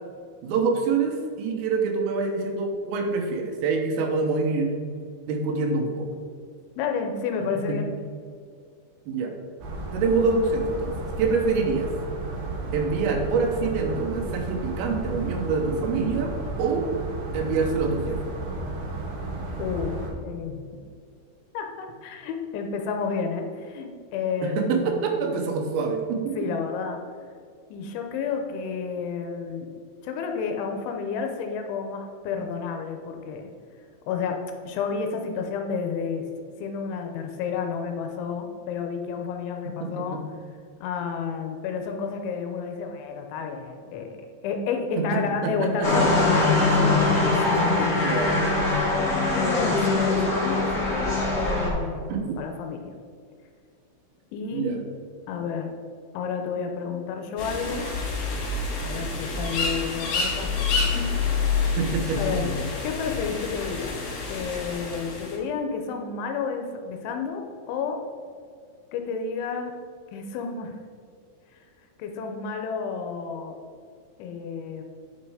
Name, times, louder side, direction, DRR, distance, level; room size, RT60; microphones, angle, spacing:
voice 1, 0.4-4.7 5.3-6.1 7.7-7.8 9.1-9.3 9.9-11.9 12.7-16.9 17.3-18.2 24.4-26.5 39.8-40.2 45.0-46.9 48.0-48.4 52.1-52.4 54.5-54.8 61.8-62.5, right 4 dB, 85° right, 3 dB, 3.7 m, -26 dB
voice 2, 6.8-7.9 19.6-20.6 21.5-25.3 26.4-27.0 27.7-29.7 30.0-33.5 34.1-34.4 34.7-36.2 36.6-40.2 40.8-44.2 44.4-48.1 48.9-52.9 54.3-54.8 55.3-55.7 56.1-57.9 58.8-61.5 62.2-62.5 62.8-64.0 64.3-68.0 68.9-69.7 70.1-70.8 72.0-73.6 74.2-74.8, left 5 dB, 80° left, 4 dB, 3.0 m, -31 dB
sound 1, 9.6-20.1, right 2 dB, 60° right, 2.6 m, -33 dB
sound 2, 45.8-51.7, left 2 dB, 40° left, 1.0 m, -22 dB
sound 3, 57.4-65.4, left 4 dB, 60° left, 3.7 m, -28 dB
9.5 x 5.5 x 4.9 m, 2.2 s
omnidirectional pair, 5.6 m